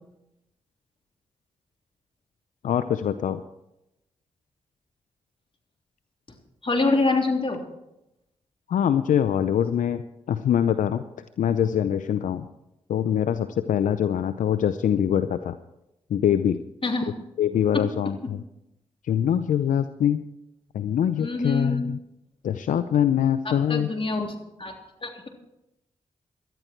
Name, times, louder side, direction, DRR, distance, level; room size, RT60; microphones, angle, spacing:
voice 1, 2.6-3.4 6.9-7.1 8.7-10.0 10.3-11.0 11.4-12.5 12.9-15.6 16.1-16.6 17.4-18.4 19.0-20.2 20.7-22.0 22.4-23.9, left 9 dB, 80° left, 11 dB, 0.6 m, -23 dB
voice 2, 6.6-7.6 16.8-17.1 21.2-21.9 23.5-24.7 25.0-25.2, left 2 dB, 40° left, 2 dB, 3.4 m, -25 dB
18.0 x 12.5 x 4.5 m, 0.88 s
supercardioid pair, 40°, 13 cm